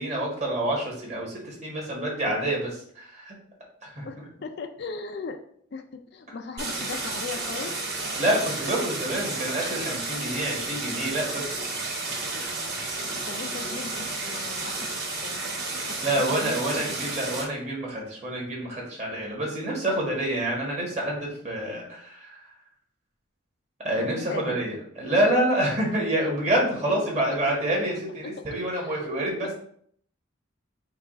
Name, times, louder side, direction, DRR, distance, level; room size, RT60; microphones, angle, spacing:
voice 1, 0.0-3.3 3.8-4.0 8.2-11.6 12.4-12.5 16.0-22.4 23.8-29.5, right 1 dB, 30° right, -2 dB, 1.4 m, -27 dB
voice 2, 4.0-5.4 5.7-7.7 13.3-15.4 15.8-17.2 24.0-24.7 26.9-27.1 28.2-28.3 28.7-29.5, left 4 dB, 50° left, 6 dB, 0.4 m, -38 dB
Stream, 6.6-17.4, right 3 dB, 50° right, 1.7 m, -32 dB
4.6 x 2.4 x 4.8 m, 0.63 s
head